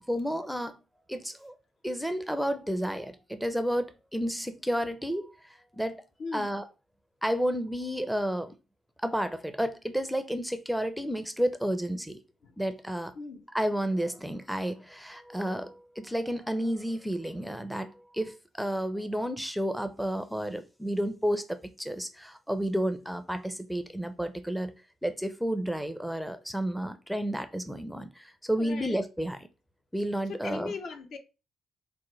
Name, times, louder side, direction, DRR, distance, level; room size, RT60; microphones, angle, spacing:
voice 1, 0.1-0.8 1.1-1.5 1.8-6.0 6.3-6.6 7.2-8.5 9.0-12.2 12.6-13.1 13.5-24.7 25.0-29.4 29.9-30.7, equal, ahead, 0.4 m, -31 dB
voice 2, 6.2-6.6 12.4-12.5 13.2-13.5 28.5-29.0 30.3-31.2, left 4 dB, 65° left, 0.6 m, -39 dB
4.6 x 2.1 x 3.0 m
cardioid pair, 90°, 0 cm